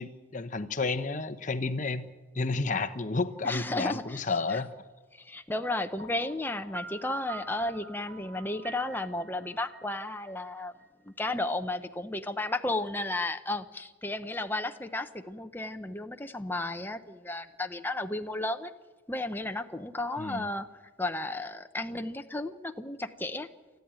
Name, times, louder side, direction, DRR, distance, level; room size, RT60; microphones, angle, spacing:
voice 1, 0.0-2.1 2.3-4.7 20.2-20.5, left 3 dB, 40° left, 10 dB, 0.8 m, -31 dB
voice 2, 3.4-4.2 4.5-4.6 5.1-10.7 11.0-18.7 19.1-20.7 21.0-23.5, left 2 dB, 10° left, 7 dB, 0.8 m, -33 dB
Piano, 6.0-10.8, right 3 dB, 65° right, 3.4 m, -46 dB
28.5 x 10.5 x 8.9 m, 1.2 s
head